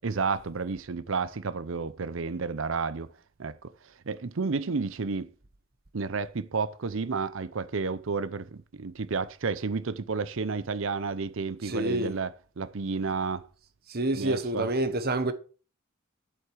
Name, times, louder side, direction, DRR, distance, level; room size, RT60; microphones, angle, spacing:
voice 1, 0.0-3.1 3.4-5.3 5.9-13.4 14.2-14.7, right 4 dB, 65° right, 0.6 m, -31 dB
voice 2, 11.6-12.2 13.9-15.3, right 1 dB, 45° right, 1.2 m, -28 dB
8.1 x 7.8 x 6.2 m
head